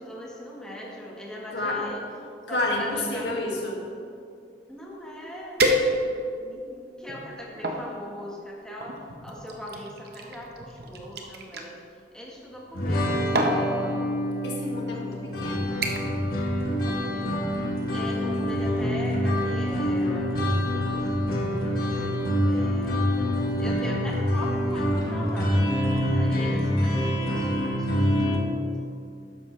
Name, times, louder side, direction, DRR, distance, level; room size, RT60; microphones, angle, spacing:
voice 1, 0.0-2.0 2.5-3.4 4.7-5.6 6.4-11.8 12.1-14.0 16.7-17.6 17.9-23.3 23.6-28.9, equal, 5° left, -4 dB, 1.4 m, -41 dB
voice 2, 2.5-3.8 14.4-15.7, left 2 dB, 75° left, -2 dB, 2.1 m, -29 dB
sound 1, 4.9-5.0 5.6-6.4 7.0-7.8 8.8-11.7 12.8-13.0 13.3-13.7 14.5-14.7 15.1-15.4 15.8-16.2 16.5-16.9 17.3-17.4, right 1 dB, 60° right, 1.1 m, -28 dB
sound 2, 12.7-28.4, equal, 55° left, 1.6 m, -26 dB
12.5 x 10.0 x 3.3 m, 2.4 s
head